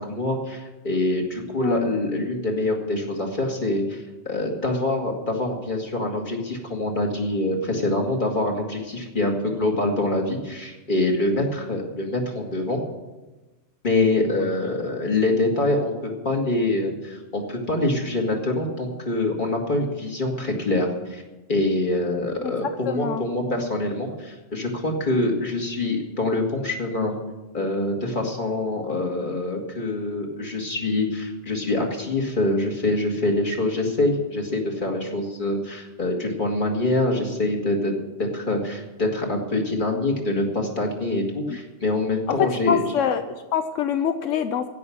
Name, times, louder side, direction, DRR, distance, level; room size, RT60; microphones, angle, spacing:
voice 1, 0.0-12.8 13.8-21.2 21.5-27.1 27.5-42.8, left 2 dB, 40° left, 1 dB, 2.4 m, -25 dB
voice 2, 22.4-23.7 41.5-41.6 42.3-44.6, left 8 dB, 85° left, 8 dB, 1.1 m, -26 dB
16.0 x 6.2 x 9.9 m, 1.1 s
omnidirectional pair, 1.3 m